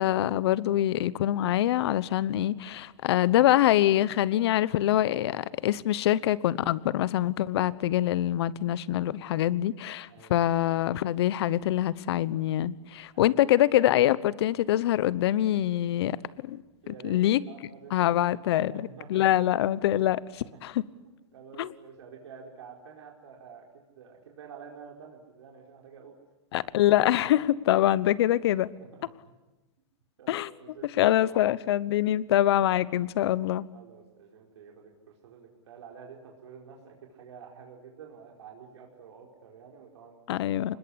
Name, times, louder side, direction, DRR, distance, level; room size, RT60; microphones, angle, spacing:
voice 1, 0.0-16.2 16.4-16.6 16.9-17.4 17.9-18.7 19.1-20.8 21.6-21.7 26.5-28.7 30.3-30.5 31.0-33.6 40.3-40.8, left 13 dB, 60° left, 19 dB, 1.1 m, -24 dB
voice 2, 10.1-10.4 16.8-17.2 17.5-19.3 20.4-20.6 21.0-26.1 27.2-27.3 28.9-29.1 30.2-31.1 32.1-32.2 33.7-34.9 35.2-40.8, right 6 dB, 70° right, 0 dB, 4.7 m, -49 dB
25.5 x 21.0 x 9.9 m, 1.1 s
hypercardioid pair, 135°, 15 cm